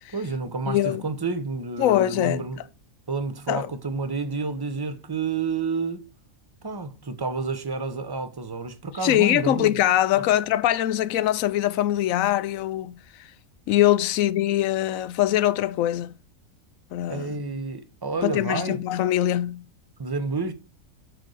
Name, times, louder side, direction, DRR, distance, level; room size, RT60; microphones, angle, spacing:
voice 1, 0.1-2.6 3.1-6.1 6.6-9.7 17.1-18.8 20.0-20.5, right 4 dB, 25° right, 0.6 m, -30 dB
voice 2, 0.7-1.1 1.8-2.5 3.5-3.7 9.0-13.3 13.7-16.1 16.9-17.4 18.2-19.7, left 13 dB, 75° left, 1.0 m, -23 dB
9.1 x 4.0 x 6.3 m
omnidirectional pair, 1.5 m